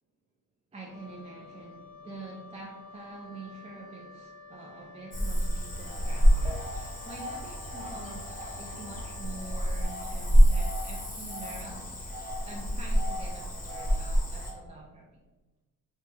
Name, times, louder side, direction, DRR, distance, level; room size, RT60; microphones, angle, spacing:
voice 1, 0.7-12.1 12.4-15.1, right 3 dB, 20° right, -2 dB, 0.3 m, -46 dB
Wind instrument woodwind instrument, 0.9-10.0, left 4 dB, 60° left, 0.5 m, -50 dB
Cricket / Frog, 5.1-14.5, equal, 25° left, 0.7 m, -27 dB
2.7 x 2.2 x 3.2 m, 1.1 s
cardioid pair, 115°, 33 cm